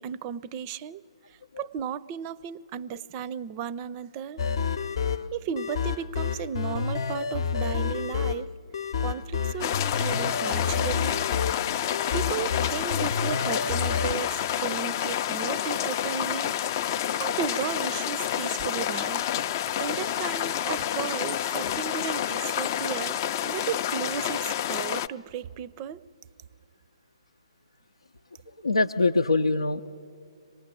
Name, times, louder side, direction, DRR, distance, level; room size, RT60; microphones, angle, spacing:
voice 1, 0.0-4.4 5.0-8.5 9.0-11.3 12.1-16.6 17.2-19.2 19.5-26.0, right 9 dB, 30° right, 0.5 m, -35 dB
sound 1, 4.4-14.1, left 6 dB, 55° left, 0.9 m, -29 dB
sound 2, 9.6-25.1, left 10 dB, 35° left, 0.5 m, -29 dB
voice 2, 28.6-29.8, left 3 dB, 85° left, 0.6 m, -23 dB
25.5 x 18.5 x 9.0 m
figure-of-eight pair, 130°, 3 cm